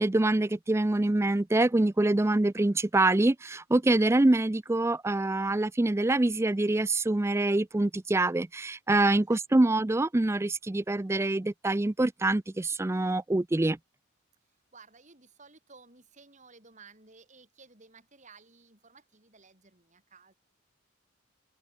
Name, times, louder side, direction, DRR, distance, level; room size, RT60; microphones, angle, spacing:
voice 1, 0.0-13.8, right 2 dB, 15° right, 0.4 m, -25 dB
voice 2, 14.7-20.3, right 4 dB, 35° right, 6.4 m, -55 dB
open air
head